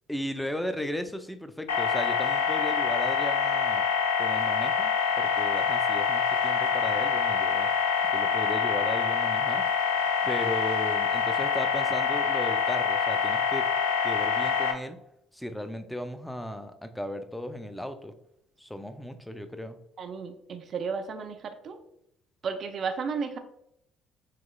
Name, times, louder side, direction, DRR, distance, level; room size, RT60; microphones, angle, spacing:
voice 1, 0.1-3.9 4.2-7.7 8.0-9.6 10.3-13.7 14.0-15.0 15.3-18.1 18.6-19.8, equal, 5° left, 8 dB, 0.5 m, -36 dB
sound 1, 1.7-14.7, left 6 dB, 90° left, 0.4 m, -26 dB
voice 2, 20.0-21.8 22.4-23.4, right 5 dB, 50° right, 7 dB, 0.5 m, -33 dB
5.7 x 3.0 x 2.3 m, 0.78 s
hypercardioid pair, 55°, 0 cm